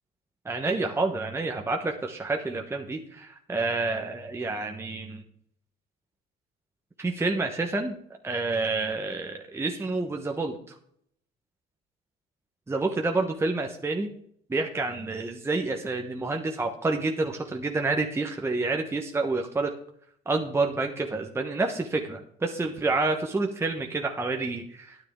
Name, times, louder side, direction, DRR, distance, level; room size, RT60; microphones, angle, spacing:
voice 1, 0.4-5.2 7.0-8.0 8.2-10.6 12.7-14.1 14.5-19.7 20.3-25.0, right 3 dB, 15° right, 2 dB, 1.1 m, -28 dB
12.5 x 9.7 x 3.7 m, 0.66 s
cardioid pair, 110°, 17 cm